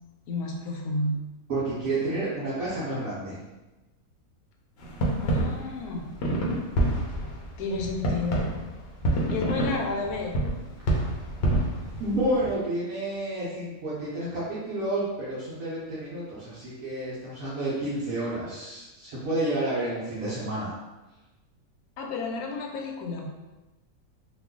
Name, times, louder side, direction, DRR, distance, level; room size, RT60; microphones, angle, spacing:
voice 1, 0.3-1.2 5.2-6.1 7.6-8.5 9.3-10.4 22.0-23.3, left 2 dB, 80° left, 1 dB, 1.1 m, -31 dB
voice 2, 1.5-3.4 12.0-20.7, right 1 dB, 65° right, -9 dB, 1.2 m, -30 dB
sound 1, 4.8-12.5, right 1 dB, 55° left, 0.8 m, -27 dB
3.1 x 2.3 x 3.6 m, 1.1 s
omnidirectional pair, 1.6 m